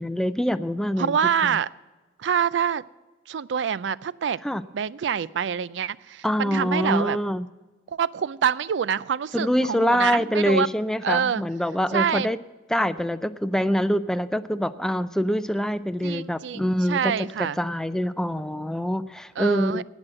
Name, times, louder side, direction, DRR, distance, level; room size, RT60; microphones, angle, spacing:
voice 1, 0.0-1.2 1.4-1.6 4.4-4.6 6.2-7.5 9.3-12.4 12.7-19.8, equal, 5° left, 12 dB, 0.4 m, -25 dB
voice 2, 1.0-1.7 2.2-2.8 3.3-4.4 4.7-7.2 7.9-10.7 11.0-11.4 11.9-12.3 16.0-17.6 19.4-19.8, right 7 dB, 85° right, 19 dB, 0.4 m, -26 dB
18.5 x 6.3 x 7.5 m, 1.2 s
head